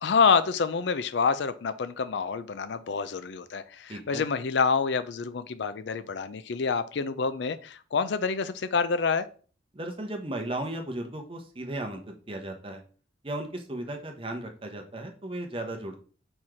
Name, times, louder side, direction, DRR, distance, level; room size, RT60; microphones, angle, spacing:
voice 1, 0.0-9.3, left 5 dB, 65° left, 14 dB, 0.4 m, -27 dB
voice 2, 3.9-4.2 9.7-12.8 13.2-16.0, right 1 dB, 30° right, 4 dB, 0.9 m, -35 dB
4.5 x 4.3 x 4.9 m, 0.40 s
head